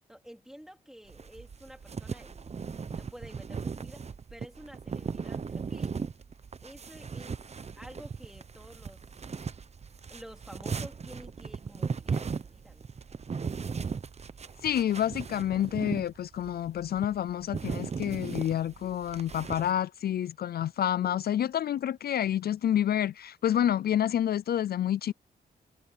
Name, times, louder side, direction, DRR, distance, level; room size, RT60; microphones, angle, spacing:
voice 1, 0.0-2.5 2.9-6.0 6.6-7.4 7.8-9.3 10.1-12.9, equal, 5° right, 3.1 m, -50 dB
sound 1, 1.1-19.7, right 5 dB, 40° right, 0.9 m, -37 dB
voice 2, 14.6-25.1, left 10 dB, 65° left, 0.4 m, -28 dB
cardioid pair, 90°, 17 cm